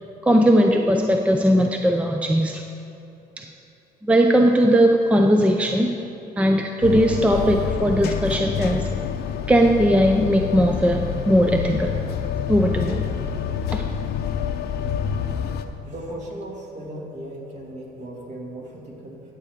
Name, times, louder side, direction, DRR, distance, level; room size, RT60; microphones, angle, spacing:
voice 1, 0.2-2.6 3.4-3.5 4.0-5.9 6.4-8.9 9.5-12.0 12.5-13.0 13.7-13.8, equal, 10° right, 3 dB, 0.5 m, -19 dB
sound 1, 6.8-15.7, left 8 dB, 70° left, 0.7 m, -27 dB
voice 2, 14.7-15.1 15.8-19.2, right 1 dB, 45° right, -2 dB, 2.3 m, -37 dB
14.0 x 8.1 x 3.6 m, 2.8 s
cardioid pair, 110°, 17 cm